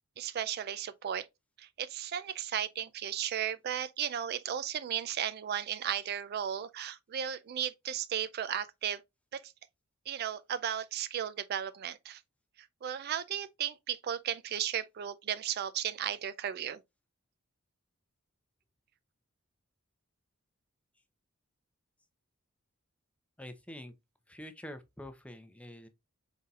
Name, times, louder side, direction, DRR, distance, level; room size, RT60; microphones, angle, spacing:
voice 1, 0.2-1.3 1.6-9.0 9.3-9.5 10.1-12.2 12.6-16.8, right 9 dB, 45° right, 0.3 m, -35 dB
voice 2, 23.4-23.9 24.3-25.9, left 1 dB, 5° left, 0.6 m, -46 dB
5.6 x 4.0 x 2.3 m
head